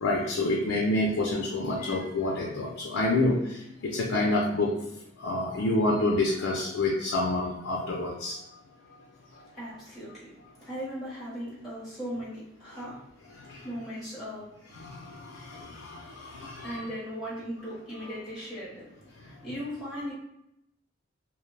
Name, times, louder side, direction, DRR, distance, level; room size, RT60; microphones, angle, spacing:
voice 1, 0.0-4.7 5.2-8.4 13.5-13.6 14.7-16.9, left 2 dB, 85° left, -2 dB, 0.5 m, -28 dB
voice 2, 9.5-10.3 10.6-13.0 13.6-14.6 16.6-20.1, equal, ahead, -9 dB, 1.1 m, -38 dB
2.4 x 2.2 x 3.2 m, 0.81 s
head